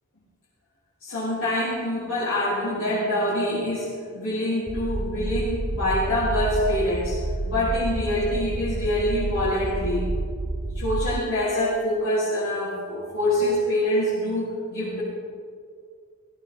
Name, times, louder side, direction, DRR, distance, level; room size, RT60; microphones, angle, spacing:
voice 1, 1.0-7.2 7.4-10.1 10.6-15.0, left 1 dB, 70° left, -11 dB, 3.8 m, -25 dB
sound 1, 4.7-11.2, right 2 dB, 20° right, 0.4 m, -29 dB
17.0 x 16.0 x 3.8 m, 2.1 s
head